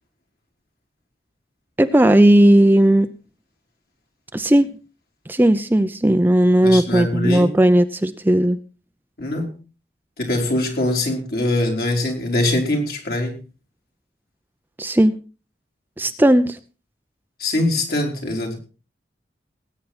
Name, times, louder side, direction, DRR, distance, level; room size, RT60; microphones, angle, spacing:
voice 1, 1.8-3.1 4.3-4.7 5.3-8.6 14.8-15.1 16.0-16.6, right 1 dB, 10° right, 10 dB, 0.6 m, -15 dB
voice 2, 6.6-7.5 9.2-9.5 10.2-13.4 17.4-18.6, left 1 dB, 55° left, 1 dB, 4.3 m, -22 dB
19.5 x 9.3 x 4.3 m, 0.34 s
head